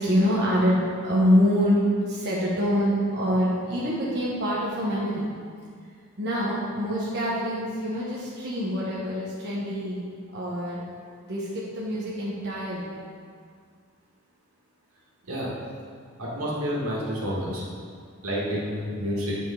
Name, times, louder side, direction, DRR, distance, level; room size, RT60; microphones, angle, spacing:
voice 1, 0.0-1.8 2.1-5.3 6.2-10.0 10.3-10.8 11.2-12.9, equal, 50° right, -7 dB, 1.1 m, -25 dB
voice 2, 16.2-17.6 18.2-19.4, equal, 85° right, -6 dB, 2.0 m, -29 dB
9.2 x 5.2 x 3.8 m, 2.1 s
head